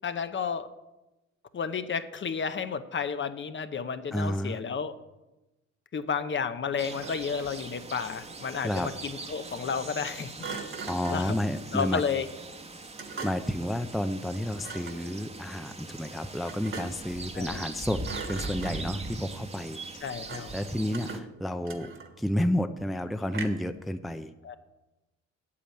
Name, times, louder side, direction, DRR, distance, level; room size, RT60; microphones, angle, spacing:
voice 1, 0.0-0.7 1.5-4.9 5.9-10.3 11.1-11.3 11.7-12.3 17.3-17.6 20.0-20.5 24.4-24.6, left 6 dB, 40° left, 11 dB, 0.8 m, -32 dB
voice 2, 4.1-4.6 8.6-8.9 10.9-12.0 13.2-18.0 18.3-19.8 20.5-21.9 22.2-24.3, left 1 dB, ahead, 9 dB, 0.6 m, -31 dB
sound 1, 6.8-21.2, right 3 dB, 20° right, 1.2 m, -42 dB
Thump thud, 6.8-7.7 10.4-11.3 13.0-13.6 14.6-15.1 16.5-17.1 17.5-17.7 18.0-19.0 20.3-20.6 20.9-22.3 23.3-23.8, right 4 dB, 40° right, 1.7 m, -41 dB
sound 2, 18.6-20.1 20.3-22.1, right 4 dB, 75° right, 1.8 m, -45 dB
8.6 x 7.5 x 8.6 m, 1.0 s
cardioid pair, 90°, 30 cm